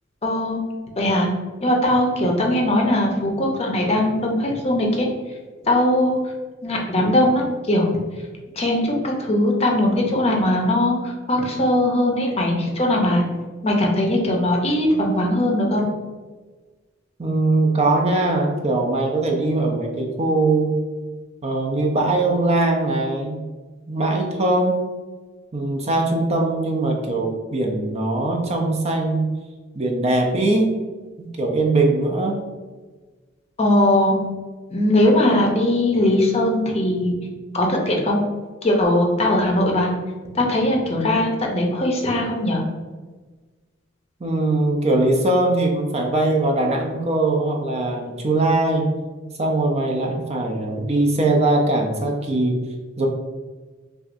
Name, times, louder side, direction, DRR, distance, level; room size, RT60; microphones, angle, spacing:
voice 1, 0.2-0.6 1.0-1.3 1.6-5.1 5.6-6.2 6.6-7.9 8.6-13.2 13.6-15.9 33.6-34.2 34.7-37.2 37.5-38.2 38.6-39.9 40.3-42.6, left 1 dB, 30° left, 0 dB, 0.7 m, -20 dB
voice 2, 17.2-20.8 21.4-23.4 23.9-24.8 25.5-29.3 29.7-30.7 31.2-32.4 44.2-48.9 49.4-52.6 53.0-53.1, right 2 dB, 35° right, 1 dB, 0.5 m, -21 dB
5.7 x 2.5 x 2.6 m, 1.3 s
head